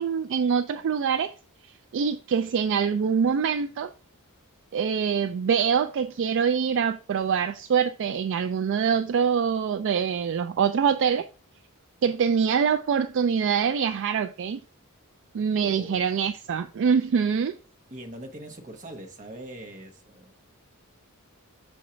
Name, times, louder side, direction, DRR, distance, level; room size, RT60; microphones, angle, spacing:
voice 1, 0.0-1.3 1.9-3.9 4.7-11.3 12.0-14.6 15.3-17.5, right 6 dB, 55° right, 0.3 m, -24 dB
voice 2, 15.6-16.1 17.9-20.4, right 1 dB, 35° right, 1.0 m, -42 dB
6.3 x 4.4 x 3.8 m
head